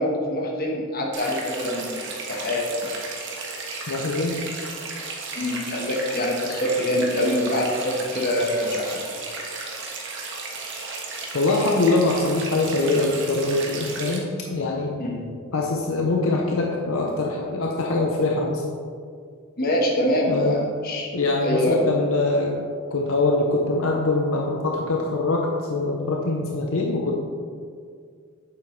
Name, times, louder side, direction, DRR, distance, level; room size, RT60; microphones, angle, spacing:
voice 1, 0.0-2.0 2.3-2.9 5.3-9.2 15.0-15.3 19.6-21.1 21.4-21.8, left 1 dB, 45° left, -1 dB, 1.3 m, -25 dB
sound 1, 1.1-14.2, right 3 dB, 60° right, 1.3 m, -34 dB
voice 2, 3.9-4.4 11.3-14.9 15.5-18.6 20.3-20.6 21.1-22.6 22.9-27.1, left 2 dB, 75° left, 0 dB, 0.8 m, -23 dB
8.9 x 7.1 x 3.2 m, 2.1 s
head